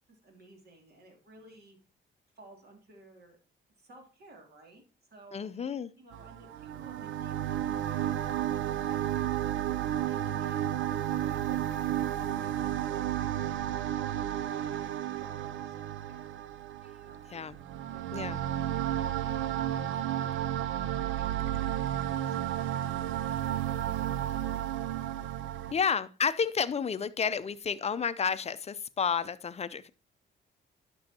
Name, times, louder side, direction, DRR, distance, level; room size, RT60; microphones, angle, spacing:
voice 1, 0.1-1.8 2.3-3.4 3.8-4.8 5.1-9.2 9.8-10.6 10.9-16.3 17.0-17.5 17.8-18.4 20.7-25.0 25.6-25.8, right 2 dB, 50° right, 2 dB, 2.7 m, -56 dB
voice 2, 5.3-5.9 17.3-17.6 18.1-18.4 25.7-29.9, left 6 dB, 35° left, 15 dB, 0.5 m, -31 dB
sound 1, 6.1-25.7, right 11 dB, 75° right, 0.5 m, -32 dB
11.5 x 6.3 x 2.8 m, 0.34 s
cardioid pair, 90°, 20 cm